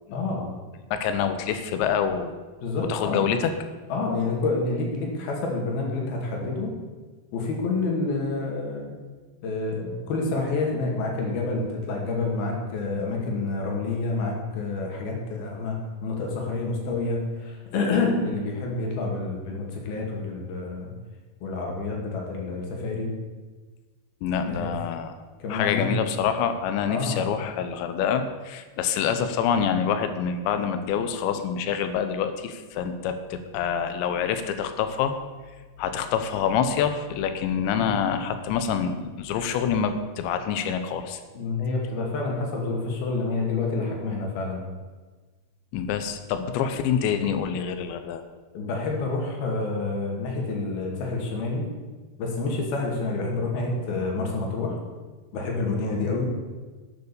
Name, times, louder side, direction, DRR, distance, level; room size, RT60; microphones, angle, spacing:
voice 1, 0.1-0.5 2.6-3.2 3.9-6.8 7.3-8.9 9.4-20.9 21.4-23.1 24.4-24.7 25.4-25.9 26.9-27.2 37.8-37.9 41.3-44.6 48.5-51.6 52.2-54.8 55.3-56.3, left 3 dB, 55° left, 0 dB, 3.8 m, -28 dB
voice 2, 0.9-2.3 2.9-3.5 24.2-25.2 25.5-35.1 35.8-41.2 45.7-48.2, left 7 dB, 75° left, 9 dB, 3.0 m, -26 dB
12.0 x 9.4 x 7.0 m, 1.3 s
omnidirectional pair, 5.6 m